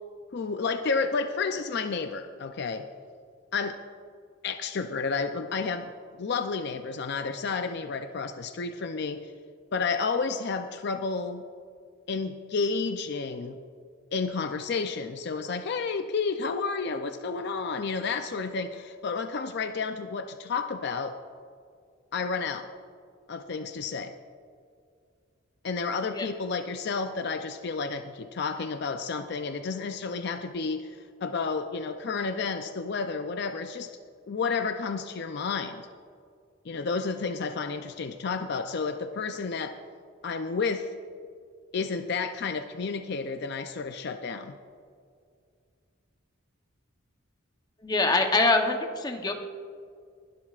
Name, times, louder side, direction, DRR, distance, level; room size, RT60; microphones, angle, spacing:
voice 1, 0.3-2.9 3.5-3.8 4.4-5.9 6.2-9.2 9.7-11.4 12.1-13.6 14.1-21.2 22.1-22.7 23.3-24.1 25.6-33.9 34.3-35.9 36.6-39.8 40.2-40.9 41.7-44.6, left 4 dB, 55° left, 7 dB, 0.5 m, -31 dB
voice 2, 47.8-49.3, left 3 dB, 20° left, 4 dB, 0.9 m, -24 dB
20.5 x 12.0 x 2.4 m, 2.2 s
head